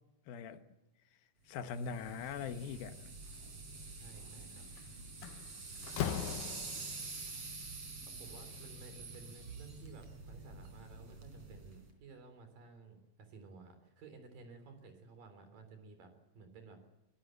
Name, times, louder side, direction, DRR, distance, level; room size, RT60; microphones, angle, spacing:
voice 1, 0.3-0.6 1.5-3.1, left 6 dB, 85° left, 3.1 m, -41 dB
sound 1, 1.6-11.9, right 3 dB, 45° right, 4.9 m, -47 dB
voice 2, 4.0-4.7 8.0-16.8, right 4 dB, 70° right, 5.2 m, -55 dB
Slam, 4.6-4.8 5.2-7.1, left 9 dB, 70° left, 2.4 m, -39 dB
21.5 x 20.5 x 7.9 m
omnidirectional pair, 4.1 m